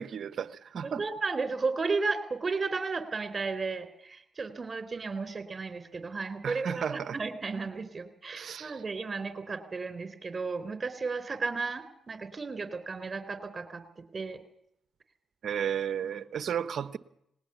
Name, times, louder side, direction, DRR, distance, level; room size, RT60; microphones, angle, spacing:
voice 1, 0.0-1.0 6.4-7.2 8.3-8.8 15.4-17.0, right 8 dB, 65° right, 1.0 m, -33 dB
voice 2, 0.8-13.8 14.1-14.4, right 4 dB, 40° right, 3.9 m, -34 dB
20.0 x 19.0 x 7.1 m
supercardioid pair, 50°, 0 cm